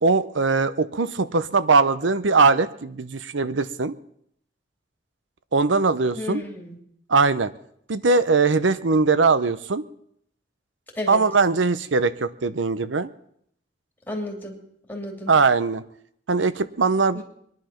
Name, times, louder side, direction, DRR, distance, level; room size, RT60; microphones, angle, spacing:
voice 1, 0.0-3.9 5.5-6.4 7.1-7.5 7.9-9.8 11.1-13.1 15.3-15.8 16.3-17.2, right 4 dB, 80° right, 14 dB, 0.8 m, -20 dB
voice 2, 6.1-6.8 11.0-11.2 14.1-14.6 14.9-15.3 17.1-17.2, left 2 dB, 10° left, 0 dB, 3.0 m, -32 dB
22.5 x 11.0 x 5.8 m, 0.70 s
head